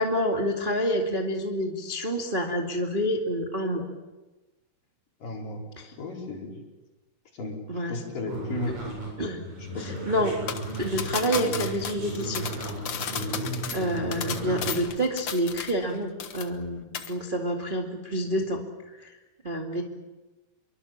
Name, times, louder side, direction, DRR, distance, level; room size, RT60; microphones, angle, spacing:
voice 1, 0.0-3.8 5.8-5.9 7.7-8.0 9.2-9.4 9.8-10.3 10.8-12.5 13.3-13.4 13.7-18.6 19.0-19.1 19.4-19.8, equal, 20° right, 1 dB, 1.4 m, -28 dB
voice 2, 5.2-5.6 6.0-6.6 7.3-7.6 7.9-8.8 9.7-10.2, left 2 dB, 55° left, -1 dB, 6.2 m, -34 dB
sound 1, 8.3-14.8, right 2 dB, 55° right, 9.1 m, -35 dB
sound 2, 10.5-15.9 16.2-16.7 16.9-17.1, left 8 dB, 80° left, 1.2 m, -34 dB
26.5 x 23.5 x 7.4 m, 1.1 s
omnidirectional pair, 4.7 m